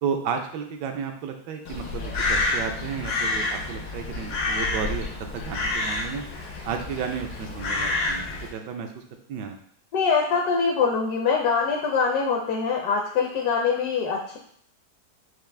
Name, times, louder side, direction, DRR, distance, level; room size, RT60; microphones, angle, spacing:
voice 1, 0.0-5.1 5.3-6.2 6.6-9.0 9.3-9.6, right 6 dB, 75° right, 5 dB, 1.2 m, -32 dB
Crow, 1.7-8.5, left 3 dB, 85° left, 1.7 m, -28 dB
voice 2, 9.9-14.4, left 5 dB, 65° left, 0 dB, 1.1 m, -23 dB
5.9 x 2.4 x 3.3 m, 0.62 s
omnidirectional pair, 2.0 m